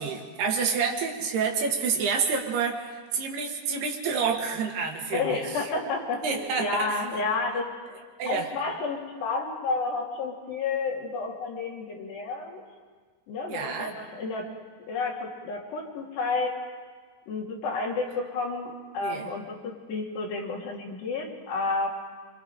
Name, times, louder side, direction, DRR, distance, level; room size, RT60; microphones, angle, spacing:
voice 1, 0.0-5.7 6.2-7.1 8.2-8.5 13.5-13.9 19.0-19.3, right 5 dB, 65° right, 2 dB, 3.4 m, -28 dB
voice 2, 5.1-7.7 8.3-12.6 13.3-14.5 14.9-16.6 17.3-21.9, left 3 dB, 60° left, -2 dB, 4.9 m, -31 dB
27.0 x 26.0 x 5.0 m, 1.5 s
omnidirectional pair, 5.6 m